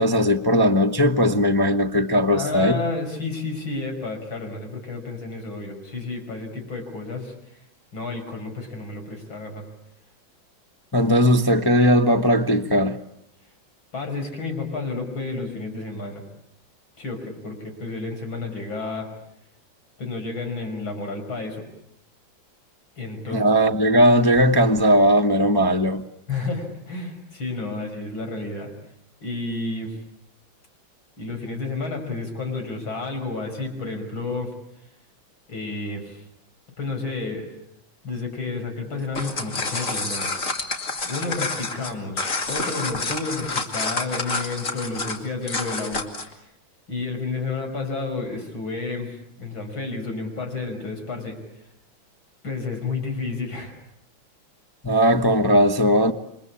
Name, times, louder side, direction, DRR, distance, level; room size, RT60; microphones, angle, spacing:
voice 1, 0.0-2.8 10.9-13.0 23.3-26.0 54.8-56.1, equal, 15° left, 1.0 m, -18 dB
voice 2, 2.3-7.3 7.9-9.7 13.9-16.2 17.0-19.1 20.0-21.6 23.0-23.6 26.3-28.7 29.2-30.0 31.2-34.5 35.5-36.2 36.8-37.5 38.0-40.7 41.0-46.5 46.9-51.4 52.4-53.7, left 3 dB, 75° left, 6.4 m, -31 dB
sound 1, 39.0-46.3, left 3 dB, 40° left, 2.9 m, -28 dB
29.0 x 24.0 x 8.5 m
omnidirectional pair, 2.2 m